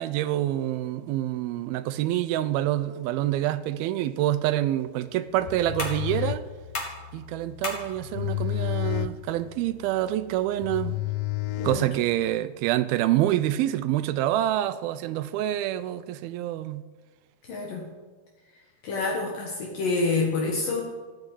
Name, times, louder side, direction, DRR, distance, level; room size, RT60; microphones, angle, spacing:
voice 1, 0.0-6.4 7.1-11.0 11.6-16.8, right 13 dB, 80° right, 2.4 m, -27 dB
sound 1, 4.3-11.3, left 2 dB, 45° left, 3.6 m, -41 dB
sound 2, 5.4-12.3, left 16 dB, 80° left, 2.4 m, -32 dB
voice 2, 17.5-17.8 18.8-20.8, left 3 dB, 65° left, 3.2 m, -27 dB
16.0 x 9.5 x 8.1 m
omnidirectional pair, 4.4 m